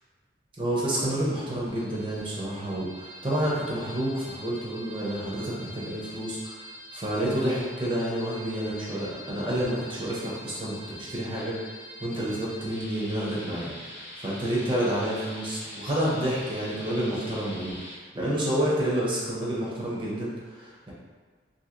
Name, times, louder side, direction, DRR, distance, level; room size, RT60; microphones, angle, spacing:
voice 1, 0.6-6.6 6.9-11.6 12.0-17.8 18.1-20.9, right 1 dB, 25° right, -6 dB, 0.5 m, -29 dB
sound 1, 1.7-18.0, left 1 dB, 60° left, 0.6 m, -44 dB
2.8 x 2.6 x 2.5 m, 1.5 s
head